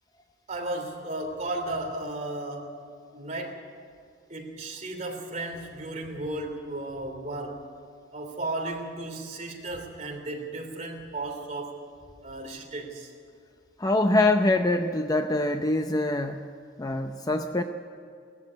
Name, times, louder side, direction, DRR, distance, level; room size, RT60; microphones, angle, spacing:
voice 1, 0.5-2.7 3.1-3.7 4.3-7.6 8.1-11.8 12.2-13.1, right 2 dB, 35° right, 1 dB, 3.1 m, -34 dB
voice 2, 13.8-16.4 16.8-17.6, left 2 dB, 20° left, 6 dB, 0.6 m, -24 dB
19.0 x 14.5 x 9.7 m, 2.3 s
head